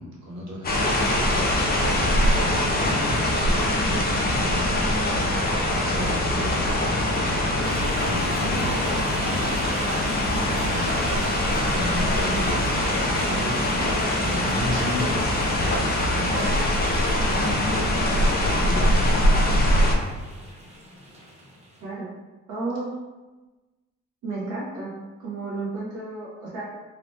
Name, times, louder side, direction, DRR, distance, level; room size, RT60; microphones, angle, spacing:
voice 1, 0.0-2.9 3.4-9.5 10.6-11.2 11.5-16.6 17.1-19.3, equal, 60° right, -4 dB, 1.1 m, -35 dB
sound 1, 0.6-19.9, left 1 dB, 30° left, 0.6 m, -23 dB
sound 2, 7.6-21.8, right 1 dB, 20° right, 0.6 m, -39 dB
voice 2, 22.5-22.9 24.2-24.9 25.2-26.6, right 3 dB, 90° right, -7 dB, 0.8 m, -32 dB
2.8 x 2.1 x 3.1 m, 1.2 s
cardioid pair, 90°, 30 cm